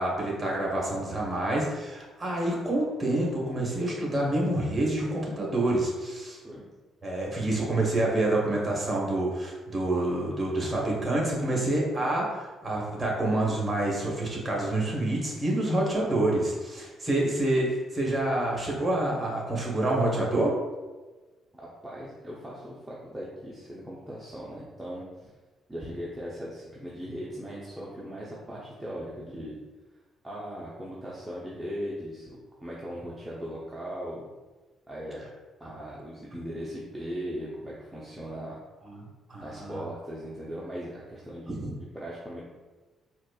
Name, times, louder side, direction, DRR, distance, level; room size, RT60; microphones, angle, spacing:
voice 1, 0.0-6.4 7.0-20.5 38.9-39.0 39.3-39.8 41.5-41.7, right 1 dB, 30° right, -3 dB, 1.3 m, -27 dB
voice 2, 21.8-25.3 25.7-29.6 30.2-34.3 34.9-35.2 35.6-38.6 39.4-42.4, equal, 15° right, -6 dB, 0.7 m, -38 dB
4.3 x 2.5 x 2.4 m, 1.2 s
supercardioid pair, 70°, 0 cm